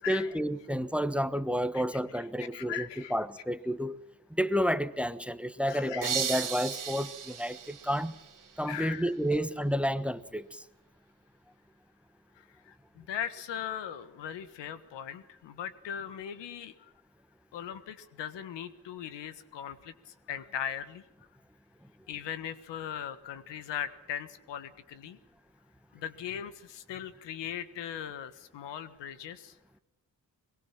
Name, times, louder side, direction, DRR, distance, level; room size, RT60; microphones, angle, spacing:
voice 1, 0.1-4.0 4.3-8.1 8.6-10.6, equal, 5° right, 15 dB, 1.1 m, -30 dB
voice 2, 2.1-3.1 5.6-6.1 8.7-9.1 12.7-16.7 17.5-19.9 20.3-21.0 22.1-25.2 25.9-29.5, left 9 dB, 90° left, 12 dB, 1.5 m, -39 dB
sound 1, 6.0-8.8, right 7 dB, 50° right, 1.7 m, -36 dB
23.0 x 22.5 x 6.0 m, 0.95 s
cardioid pair, 65°, 41 cm